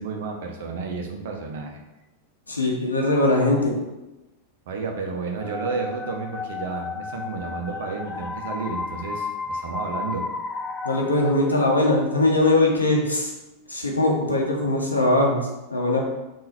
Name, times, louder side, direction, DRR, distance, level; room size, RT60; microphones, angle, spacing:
voice 1, 0.0-1.8 4.7-10.3, right 4 dB, 55° right, 2 dB, 0.7 m, -31 dB
voice 2, 2.5-3.8 10.8-13.3 13.7-16.0, left 2 dB, 80° left, 0 dB, 0.8 m, -21 dB
sound 1, 5.4-12.2, left 4 dB, 15° left, 0.3 m, -33 dB
3.8 x 2.6 x 4.3 m, 1.0 s
figure-of-eight pair, 90°, 0 cm